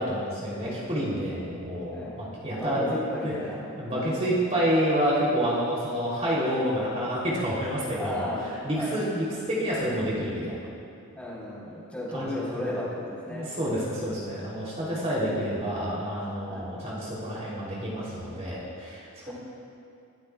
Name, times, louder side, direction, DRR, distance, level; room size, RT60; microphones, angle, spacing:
voice 1, 0.0-2.9 3.2-3.3 3.8-8.2 8.6-10.6 12.1-12.7 13.3-19.3, equal, 30° right, -6 dB, 3.1 m, -28 dB
voice 2, 1.9-3.6 8.0-8.4 8.8-9.0 11.1-13.5 16.5-16.7 19.2-19.3, left 1 dB, 5° left, -7 dB, 3.8 m, -34 dB
26.0 x 14.0 x 2.3 m, 2.6 s
head